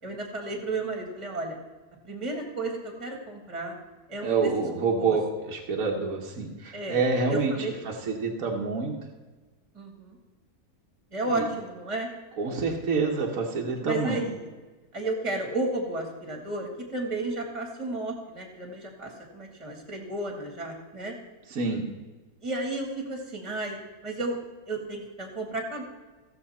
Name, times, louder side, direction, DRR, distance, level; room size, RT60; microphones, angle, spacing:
voice 1, 0.0-1.6 2.0-3.7 4.1-4.5 5.0-5.2 6.7-7.0 7.3-7.8 9.7-10.2 11.1-12.1 13.7-14.5 14.9-21.1 22.4-24.4 24.7-25.8, right 2 dB, 20° right, 1 dB, 1.9 m, -33 dB
voice 2, 4.2-7.5 8.1-8.9 11.3-11.4 12.4-14.2 21.5-21.9, right 4 dB, 65° right, 0 dB, 1.6 m, -27 dB
16.0 x 6.9 x 4.3 m, 1.3 s
omnidirectional pair, 1.6 m